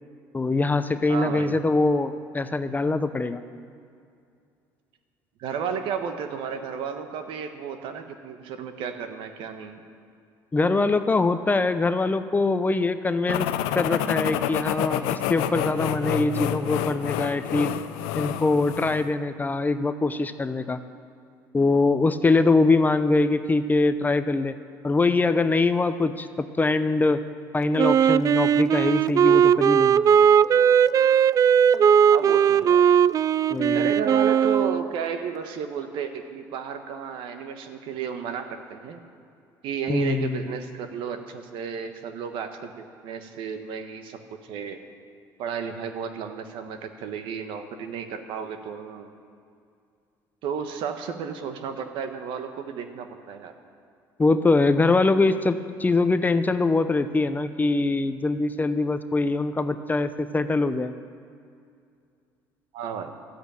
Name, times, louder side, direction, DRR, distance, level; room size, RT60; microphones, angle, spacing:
voice 1, 0.3-3.4 10.5-13.5 13.7-17.7 18.2-20.8 21.5-24.5 24.8-27.2 27.5-30.0 33.5-33.9 39.9-40.5 54.2-60.9, left 3 dB, 20° left, 11 dB, 0.7 m, -23 dB
voice 2, 1.1-1.6 5.4-9.8 32.1-32.8 33.7-39.0 39.6-44.8 45.4-49.1 50.4-53.5 62.7-63.1, right 7 dB, 70° right, 7 dB, 1.3 m, -33 dB
sound 1, 13.3-19.1, left 11 dB, 80° left, 0.7 m, -28 dB
Wind instrument woodwind instrument, 27.8-34.9, right 8 dB, 40° right, 0.3 m, -18 dB
13.0 x 8.2 x 8.9 m, 2.4 s
supercardioid pair, 80°, 9 cm